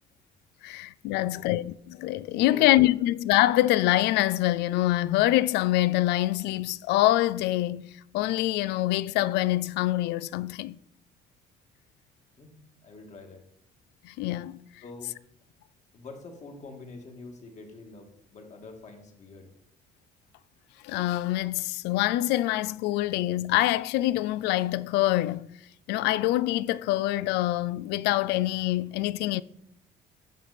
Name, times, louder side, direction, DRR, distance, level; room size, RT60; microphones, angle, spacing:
voice 1, 0.6-10.8 14.0-14.6 20.8-25.5 25.9-29.4, left 16 dB, 85° left, 0.4 m, -25 dB
voice 2, 1.1-1.5 2.4-2.7 12.4-12.5 12.8-13.4 14.8-15.1 15.9-19.5, left 3 dB, 45° left, 1.9 m, -45 dB
9.1 x 6.1 x 4.2 m
cardioid pair, 110°, 17 cm